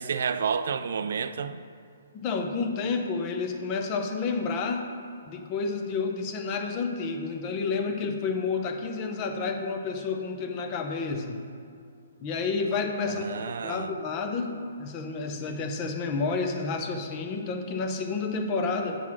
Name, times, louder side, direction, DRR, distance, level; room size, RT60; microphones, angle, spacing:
voice 1, 0.0-1.6 13.1-13.9, right 6 dB, 65° right, 12 dB, 0.3 m, -30 dB
voice 2, 2.1-4.9 5.3-11.4 12.2-13.4 13.6-19.0, left 4 dB, 25° left, 4 dB, 0.6 m, -30 dB
7.5 x 4.0 x 6.0 m, 2.4 s
hypercardioid pair, 160°, 0 cm